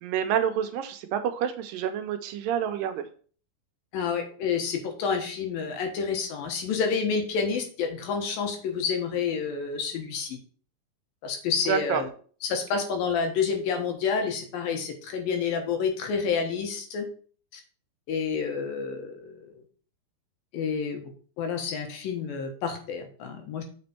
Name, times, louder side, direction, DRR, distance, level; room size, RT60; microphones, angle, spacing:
voice 1, 0.0-3.0 11.7-12.0, right 9 dB, 80° right, 8 dB, 2.4 m, -28 dB
voice 2, 3.9-10.4 11.2-12.1 12.4-17.1 17.5-17.6 18.1-19.5 20.5-21.0 21.4-23.6, left 6 dB, 80° left, 4 dB, 3.0 m, -29 dB
7.8 x 5.3 x 4.3 m, 0.43 s
omnidirectional pair, 4.1 m